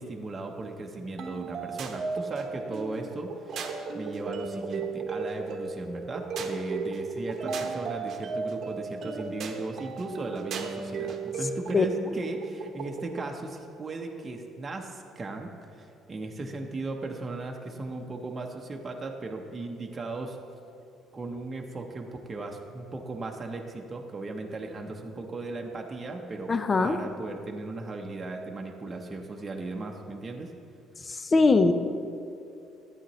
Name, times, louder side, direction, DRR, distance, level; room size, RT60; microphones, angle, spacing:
voice 1, 0.0-20.4 21.1-26.5 26.8-30.5, right 2 dB, 25° right, 1 dB, 0.8 m, -37 dB
sound 1, 1.2-13.3, right 4 dB, 55° right, 0.9 m, -35 dB
voice 2, 26.5-27.0 31.3-31.7, left 3 dB, 30° left, 10 dB, 0.5 m, -20 dB
11.5 x 8.8 x 3.1 m, 2.6 s
cardioid pair, 105°, 0 cm